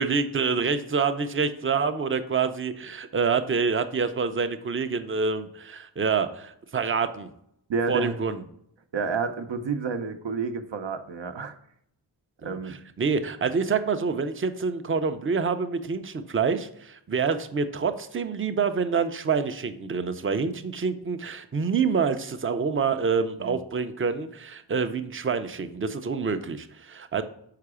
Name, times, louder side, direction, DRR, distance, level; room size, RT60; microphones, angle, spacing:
voice 1, 0.0-7.3 7.9-8.4 12.4-27.2, right 5 dB, 30° right, 9 dB, 0.5 m, -27 dB
voice 2, 7.7-8.2 8.9-11.5 12.4-12.8 23.4-23.6, right 5 dB, 75° right, 8 dB, 0.8 m, -29 dB
5.7 x 4.8 x 4.8 m, 0.73 s
wide cardioid pair, 115°, 45 cm